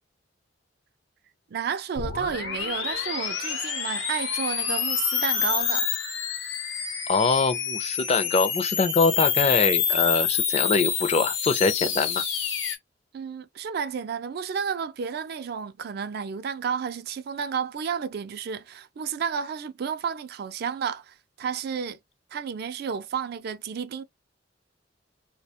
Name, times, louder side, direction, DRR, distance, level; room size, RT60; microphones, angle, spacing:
voice 1, 1.5-5.9 13.1-22.0 22.3-24.0, right 6 dB, 55° right, 0.3 m, -31 dB
sound 1, 2.0-12.8, left 7 dB, 85° left, 0.7 m, -27 dB
voice 2, 7.1-12.2, left 4 dB, 35° left, 0.4 m, -23 dB
2.3 x 2.2 x 2.7 m
head